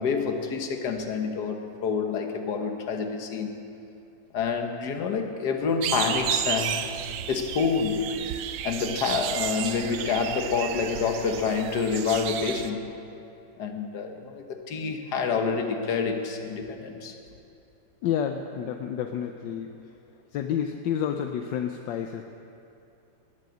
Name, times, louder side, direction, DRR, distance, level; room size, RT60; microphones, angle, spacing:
voice 1, 0.0-3.6 4.3-6.8 7.3-8.2 8.6-12.9 13.6-17.1, left 5 dB, 65° left, 4 dB, 1.7 m, -28 dB
sound 1, 5.8-12.7, right 10 dB, 75° right, 1.3 m, -32 dB
voice 2, 18.0-19.9 20.3-22.2, left 8 dB, 80° left, 5 dB, 1.3 m, -30 dB
19.0 x 7.8 x 7.8 m, 2.7 s
omnidirectional pair, 2.0 m